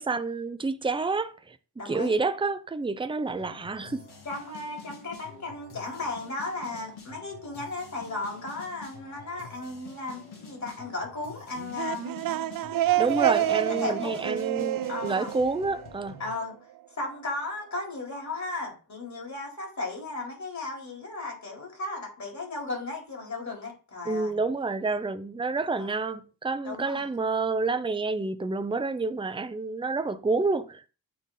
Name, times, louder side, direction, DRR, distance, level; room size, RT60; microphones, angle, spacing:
voice 1, 0.0-1.6 1.9-4.0 13.0-16.2 24.0-30.9, right 3 dB, 15° right, 0.6 m, -29 dB
voice 2, 1.8-2.2 4.2-12.1 13.8-14.3 14.9-15.3 16.2-16.6 16.9-24.3 25.8-25.9 26.6-27.1, left 2 dB, 45° left, 3.9 m, -35 dB
sound 1, 3.4-16.3, left 5 dB, 75° left, 2.3 m, -48 dB
sound 2, 11.6-16.3, right 13 dB, 60° right, 0.5 m, -28 dB
8.4 x 3.5 x 4.0 m
cardioid pair, 80°, 39 cm